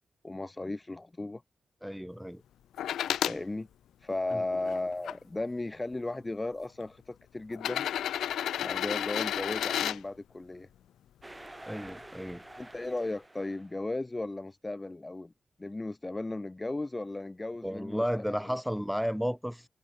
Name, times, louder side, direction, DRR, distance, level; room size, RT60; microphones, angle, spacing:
voice 1, 0.2-1.4 3.2-3.7 4.0-7.9 8.6-10.7 12.5-15.3 15.6-18.6, left 2 dB, 25° left, 2.1 m, -36 dB
voice 2, 1.8-2.4 4.3-4.4 11.7-12.4 17.6-19.7, equal, ahead, 5.9 m, -33 dB
sound 1, 2.8-3.4 4.1-5.1 6.1-6.2 7.5-10.0 11.9-12.0, left 10 dB, 90° left, 0.5 m, -32 dB
sound 2, 11.2-13.8, right 1 dB, 20° right, 4.0 m, -49 dB
cardioid pair, 50°, 0 cm